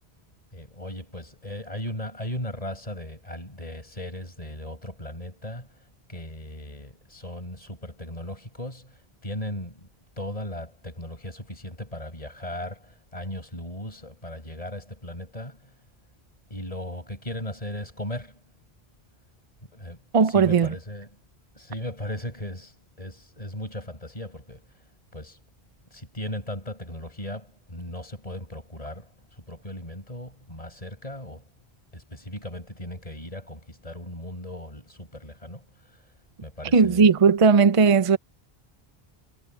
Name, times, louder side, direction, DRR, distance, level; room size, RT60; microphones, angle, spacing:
voice 1, 0.5-9.9 10.2-15.7 16.5-18.4 19.7-21.2 21.5-24.8 25.1-25.4 25.9-31.5 31.9-36.1 36.4-37.1, left 1 dB, 35° left, 6.9 m, -37 dB
voice 2, 20.1-20.7 36.7-38.2, right 5 dB, 35° right, 0.7 m, -17 dB
omnidirectional pair, 1.0 m